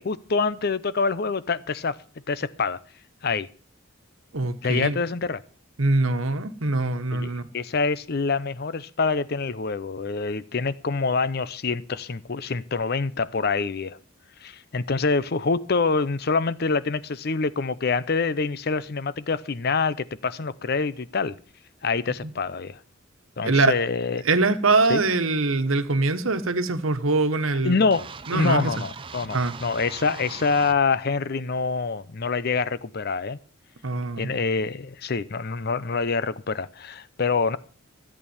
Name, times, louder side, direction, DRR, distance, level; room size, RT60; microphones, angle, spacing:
voice 1, 0.0-2.0 2.3-2.8 3.2-3.5 4.6-5.4 7.1-14.0 14.4-21.4 21.8-22.8 23.4-24.2 24.9-25.0 27.6-28.1 28.3-33.4 34.2-37.6, left 4 dB, 50° left, 0.6 m, -26 dB
voice 2, 4.3-5.0 5.8-7.4 23.4-23.7 24.2-27.8 28.3-28.7 29.3-29.5 33.8-34.3, right 3 dB, 85° right, 1.3 m, -23 dB
sound 1, 27.9-30.8, right 5 dB, 25° right, 0.7 m, -40 dB
14.0 x 8.5 x 7.1 m
head